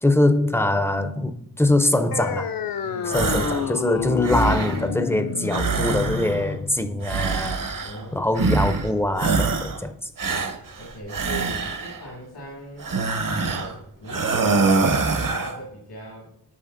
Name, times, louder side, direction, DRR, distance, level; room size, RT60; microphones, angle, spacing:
voice 1, 0.0-2.5 3.0-7.6 8.1-10.1, left 1 dB, 5° left, 0.4 m, -23 dB
sound 1, 2.1-9.1, left 6 dB, 65° left, 0.5 m, -30 dB
voice 2, 2.8-3.2 7.8-8.3 10.8-12.9 13.4-16.3, equal, 85° left, 2.1 m, -38 dB
sound 2, 3.1-3.7 4.0-4.9 5.5-6.5 7.0-8.0 8.4-8.9 9.2-9.8 10.2-12.0 12.8-13.7 14.1-15.6, right 4 dB, 60° right, 0.8 m, -24 dB
8.5 x 6.1 x 2.5 m
wide cardioid pair, 135°, 38 cm